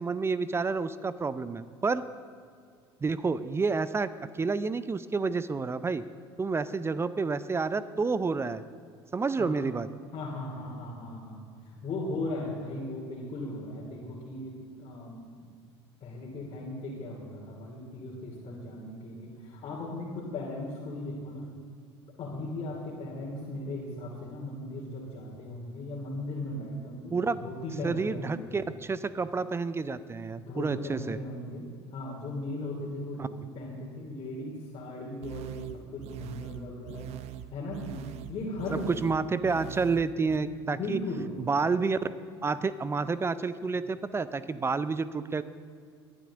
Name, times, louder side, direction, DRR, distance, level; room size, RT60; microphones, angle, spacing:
voice 1, 0.0-2.0 3.0-4.1 4.4-6.0 6.4-8.6 9.1-9.9 27.1-27.4 27.8-31.2 33.2-33.3 38.7-41.0 41.4-42.0 42.4-45.4, right 4 dB, 20° right, 15 dB, 0.5 m, -29 dB
voice 2, 10.1-15.2 16.0-21.5 22.2-28.5 30.3-37.2 37.5-38.0 38.3-38.8 40.7-41.3, left 2 dB, 35° left, -5 dB, 3.0 m, -37 dB
sound 1, 35.2-40.4, right 14 dB, 50° right, 0.8 m, -43 dB
21.0 x 11.5 x 3.7 m, 2.1 s
figure-of-eight pair, 70°, 14 cm